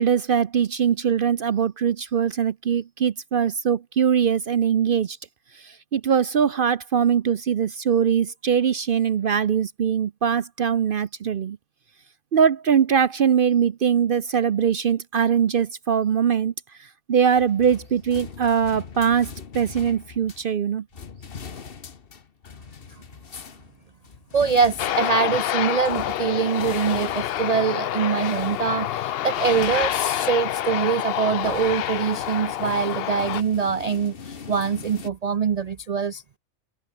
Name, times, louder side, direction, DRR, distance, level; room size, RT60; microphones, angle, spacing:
voice 1, 0.0-5.2 5.5-11.6 12.3-16.5 16.8-20.8, right 7 dB, 50° right, 0.7 m, -22 dB
sound 1, 17.3-20.5 20.9-30.7 31.0-35.1, left 6 dB, 45° left, 1.4 m, -42 dB
voice 2, 24.3-36.2, right 6 dB, 70° right, 0.3 m, -24 dB
Aircraft, 24.8-33.4, left 12 dB, 60° left, 0.6 m, -27 dB
open air
omnidirectional pair, 1.4 m